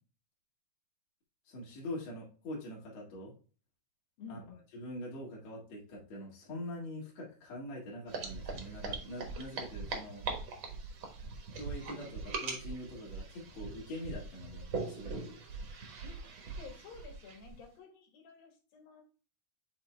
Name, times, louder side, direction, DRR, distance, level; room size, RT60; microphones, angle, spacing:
voice 1, 1.5-3.3 4.3-4.4 4.7-10.3 11.5-15.3, left 1 dB, 50° left, -4 dB, 2.8 m, -44 dB
voice 2, 4.2-4.6 16.0-16.3 16.6-19.0, left 5 dB, 80° left, 3 dB, 3.4 m, -51 dB
sound 1, 8.1-17.6, right 4 dB, 55° right, 1.4 m, -41 dB
7.4 x 3.9 x 3.3 m, 0.35 s
omnidirectional pair, 4.1 m